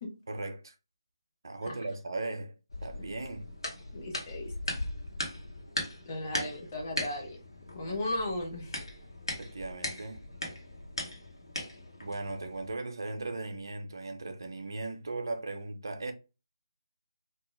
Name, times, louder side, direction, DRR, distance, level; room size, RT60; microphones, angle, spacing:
voice 1, 0.3-0.7 1.4-2.5 2.8-3.5 7.8-8.0 9.4-10.2 12.0-16.1, right 2 dB, 55° right, 0.5 m, -37 dB
sound 1, 2.7-12.8, left 1 dB, 75° left, 0.9 m, -39 dB
voice 2, 3.9-4.7 6.1-7.4 7.7-8.8, left 1 dB, 30° left, 0.8 m, -36 dB
2.2 x 2.1 x 3.1 m
figure-of-eight pair, 150°, 3 cm